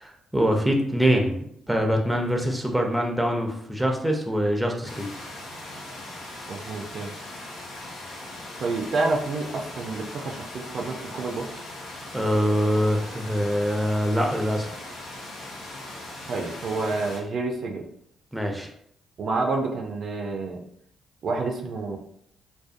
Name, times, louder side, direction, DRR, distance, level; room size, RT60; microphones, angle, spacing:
voice 1, 0.0-5.1 12.1-14.7 18.3-18.7, equal, 5° right, 1 dB, 0.5 m, -24 dB
sound 1, 4.8-17.2, left 1 dB, 90° left, 0.6 m, -39 dB
voice 2, 6.5-7.1 8.6-11.6 16.3-17.8 19.2-20.6 21.2-22.0, right 3 dB, 60° right, 2 dB, 0.3 m, -29 dB
2.5 x 2.1 x 2.4 m, 0.71 s
cardioid pair, 70°, 0 cm